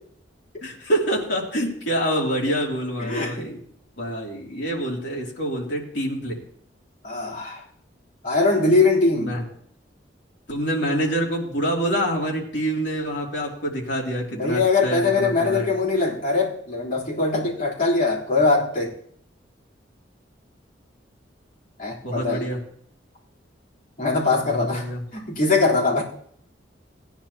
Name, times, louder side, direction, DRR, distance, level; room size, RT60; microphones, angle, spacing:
voice 1, 0.6-3.6 4.0-6.4 9.2-9.4 10.5-15.7 17.4-17.5 22.0-22.6 24.4-25.0, right 1 dB, 70° left, -2 dB, 2.9 m, -26 dB
voice 2, 3.0-3.5 7.0-7.6 8.2-9.3 14.3-18.9 21.8-22.5 24.0-26.0, left 3 dB, 50° left, -6 dB, 3.7 m, -22 dB
18.0 x 10.0 x 2.9 m, 0.63 s
head